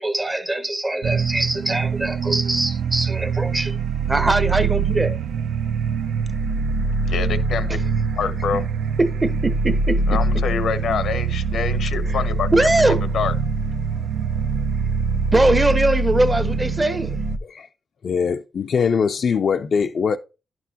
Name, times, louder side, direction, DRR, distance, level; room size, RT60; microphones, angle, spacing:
voice 1, 0.0-3.8 4.1-5.2 9.0-10.2 12.1-12.2 12.5-13.0 15.3-17.2, right 2 dB, 20° right, 0.7 m, -21 dB
sound 1, 1.0-17.4, right 4 dB, 85° right, 0.5 m, -23 dB
voice 2, 7.0-7.8 8.1-8.7 10.1-13.3, left 6 dB, 85° left, 0.8 m, -26 dB
voice 3, 18.0-20.2, left 6 dB, 55° left, 0.4 m, -22 dB
11.0 x 6.0 x 2.8 m
cardioid pair, 110°, 0 cm